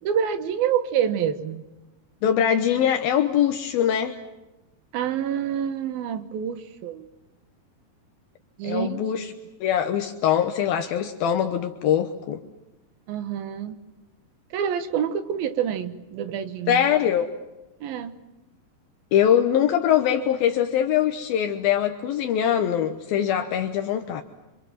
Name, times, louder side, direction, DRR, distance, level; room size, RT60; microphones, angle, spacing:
voice 1, 0.0-1.6 4.9-7.1 8.6-9.0 13.1-13.8 14.5-16.8 17.8-18.1, right 8 dB, 70° right, 10 dB, 3.1 m, -27 dB
voice 2, 2.2-4.2 8.6-9.3 9.6-12.4 16.7-17.3 19.1-24.2, left 9 dB, 75° left, 5 dB, 2.8 m, -22 dB
29.5 x 25.5 x 7.5 m, 1.0 s
omnidirectional pair, 4.5 m